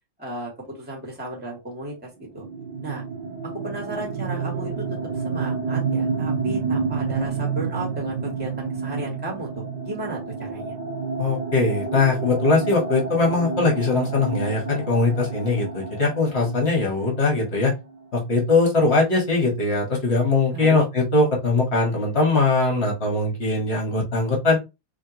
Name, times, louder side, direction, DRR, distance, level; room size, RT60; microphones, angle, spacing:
voice 1, 0.2-0.5 0.8-2.4 2.8-3.0 3.6-4.8 5.1-10.7 20.5-20.8, right 1 dB, 5° right, -1 dB, 1.4 m, -34 dB
sound 1, 2.4-18.0, right 4 dB, 70° right, 1.5 m, -29 dB
voice 2, 11.2-17.7 18.1-24.6, left 3 dB, 35° left, -1 dB, 1.6 m, -21 dB
3.7 x 3.5 x 2.9 m, 0.25 s
omnidirectional pair, 2.2 m